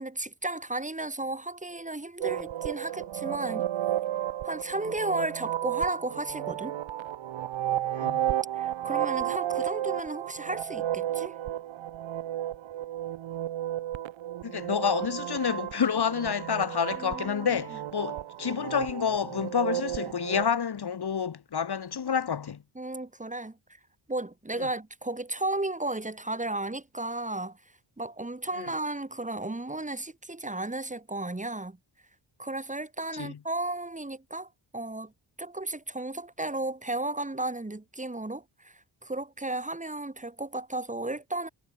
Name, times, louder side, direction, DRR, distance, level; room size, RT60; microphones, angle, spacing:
voice 1, 0.0-3.7 4.4-6.8 8.6-11.4 17.0-17.8 22.8-23.6 24.1-27.6 28.0-31.8 32.4-35.1 35.4-41.5, right 2 dB, 15° right, 4.1 m, -34 dB
sound 1, 2.2-20.5, right 12 dB, 90° right, 0.9 m, -33 dB
voice 2, 7.9-8.3 14.4-22.6 24.6-24.7 28.6-28.7 33.1-33.4, left 7 dB, 55° left, 2.3 m, -29 dB
wide cardioid pair, 120°, 45 cm